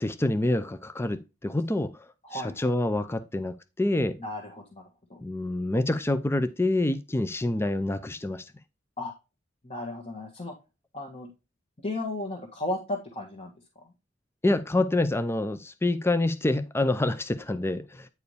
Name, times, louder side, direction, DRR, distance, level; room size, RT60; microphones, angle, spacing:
voice 1, 0.0-2.1 2.3-4.2 5.2-8.4 14.4-18.1, left 2 dB, 15° left, 0.5 m, -27 dB
voice 2, 2.2-2.7 4.2-5.2 9.0-9.1 9.6-10.5 10.9-11.3 11.8-13.5, left 2 dB, 35° left, 1.6 m, -35 dB
9.4 x 4.7 x 3.3 m
head